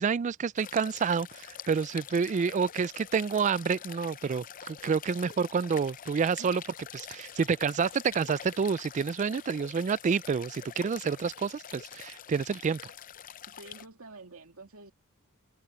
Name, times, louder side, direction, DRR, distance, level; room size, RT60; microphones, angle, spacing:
voice 1, 0.0-6.6 6.9-12.9, right 6 dB, 35° right, 0.3 m, -29 dB
sound 1, 0.6-13.9, left 9 dB, 40° left, 0.5 m, -46 dB
voice 2, 13.5-14.9, right 3 dB, 70° right, 2.6 m, -49 dB
head